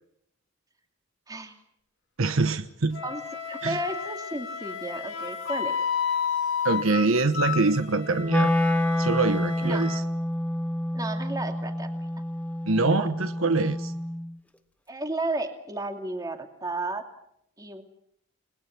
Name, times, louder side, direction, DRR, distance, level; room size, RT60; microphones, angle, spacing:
voice 1, 1.3-1.6 3.0-3.2 3.5-5.8 9.6-9.9 10.9-11.9 12.9-13.0 14.9-17.0 17.6-17.8, right 2 dB, 15° right, 4 dB, 2.5 m, -33 dB
voice 2, 2.2-3.0 3.6-3.8 6.6-8.5 9.0-10.0 12.7-13.9, right 3 dB, 70° right, 10 dB, 1.2 m, -24 dB
Wind instrument woodwind instrument, 2.9-10.0, left 7 dB, 60° left, 2.0 m, -32 dB
Wind instrument woodwind instrument 2, 8.3-14.4, left 1 dB, 5° left, 0.9 m, -28 dB
29.5 x 20.5 x 6.0 m, 0.72 s
head